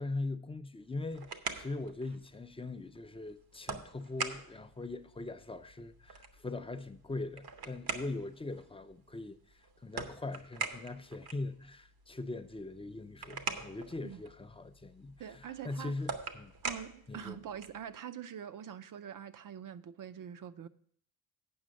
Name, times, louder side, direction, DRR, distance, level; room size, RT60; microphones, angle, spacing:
voice 1, 0.0-9.4 9.8-16.5 17.1-17.4, left 2 dB, 15° left, 0.4 m, -41 dB
sound 1, 0.8-17.9, right 5 dB, 75° right, 1.0 m, -44 dB
voice 2, 15.2-15.9 16.6-20.7, right 9 dB, 60° right, 0.6 m, -44 dB
8.7 x 6.0 x 6.3 m
wide cardioid pair, 130°, 37 cm